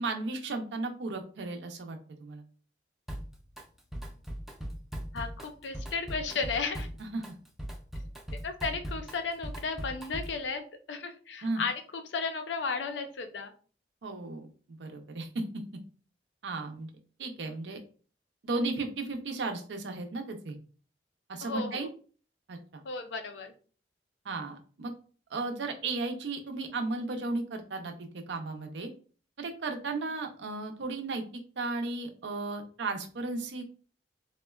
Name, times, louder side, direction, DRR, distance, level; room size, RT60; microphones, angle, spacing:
voice 1, 0.0-2.4 7.0-7.2 11.4-11.6 14.0-15.4 16.4-16.9 17.2-17.8 18.4-20.6 21.3-21.9 22.5-22.8 24.2-24.9 25.3-28.9 29.4-31.2 31.6-33.6, right 3 dB, 90° right, 5 dB, 0.5 m, -35 dB
Drum kit, 3.1-3.6 3.9-10.4, equal, ahead, 0.4 m, -39 dB
voice 2, 5.1-6.9 8.3-13.5 21.4-21.9 22.8-23.5, left 4 dB, 85° left, 7 dB, 0.5 m, -34 dB
3.6 x 2.1 x 2.3 m, 0.41 s
head